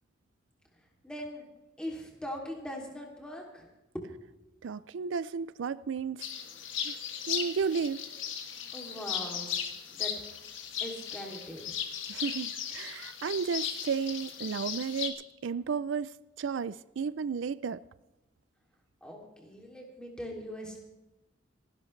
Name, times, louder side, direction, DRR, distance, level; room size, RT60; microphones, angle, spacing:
voice 1, 1.0-1.5 1.8-3.7 3.9-4.1 8.7-10.1 10.8-11.8 19.0-20.8, equal, 5° left, 2.7 m, -41 dB
voice 2, 4.6-6.3 6.8-6.9 7.3-8.0 12.1-15.2 15.4-17.8, right 6 dB, 80° right, 0.4 m, -33 dB
sound 1, 6.2-15.1, left 8 dB, 85° left, 1.7 m, -37 dB
27.5 x 12.0 x 3.2 m
head